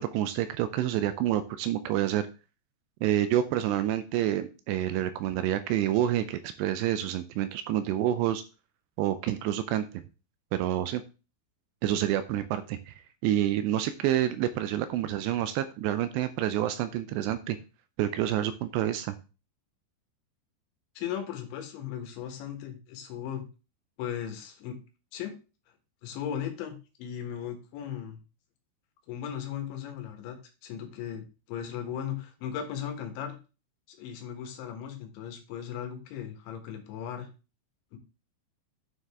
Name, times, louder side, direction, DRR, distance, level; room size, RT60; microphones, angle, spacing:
voice 1, 0.0-2.3 3.0-8.4 9.0-10.0 10.5-11.0 11.8-12.9 13.2-17.6 18.0-19.2, right 12 dB, 85° right, 12 dB, 2.6 m, -28 dB
voice 2, 21.0-23.5 24.0-24.8 25.1-25.3 26.0-28.2 29.1-30.4 30.6-33.4 33.9-37.3 37.9-38.0, left 9 dB, 80° left, 5 dB, 3.7 m, -37 dB
9.2 x 6.5 x 3.5 m, 0.32 s
omnidirectional pair, 5.3 m